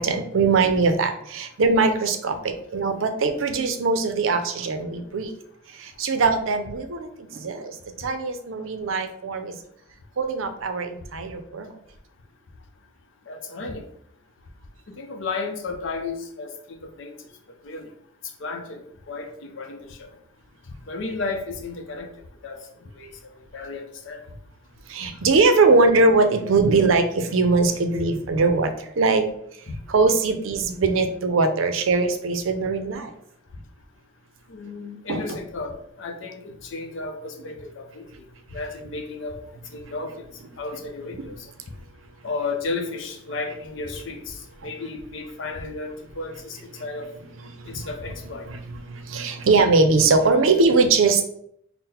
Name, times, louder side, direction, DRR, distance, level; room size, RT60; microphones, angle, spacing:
voice 1, 0.0-5.3 5.8-9.5 10.2-11.7 24.9-29.3 29.9-33.1 35.1-35.4 41.2-41.3 47.8-47.9 48.9-51.2, right 3 dB, 85° right, 7 dB, 0.5 m, -21 dB
voice 2, 13.3-13.9 14.9-17.2 17.6-17.9 18.4-20.1 20.8-22.1 22.4-22.7 22.9-24.2 34.5-38.2 38.5-39.4 39.7-40.3 40.6-41.5 42.2-47.1 47.7-48.5, left 3 dB, 75° left, 5 dB, 0.6 m, -33 dB
3.8 x 2.1 x 4.1 m, 0.71 s
head